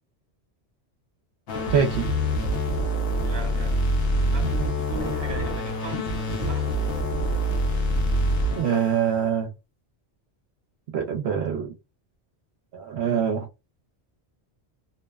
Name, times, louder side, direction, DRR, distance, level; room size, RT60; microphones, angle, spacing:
sound 1, 1.5-9.2, equal, 65° left, 0.9 m, -25 dB
voice 1, 1.7-2.1 8.6-9.5 10.9-11.7 12.7-13.4, right 8 dB, 75° right, 0.8 m, -24 dB
voice 2, 3.2-3.8 4.2-7.0 13.0-13.3, right 1 dB, 25° right, 0.8 m, -39 dB
2.7 x 2.0 x 2.2 m
omnidirectional pair, 1.1 m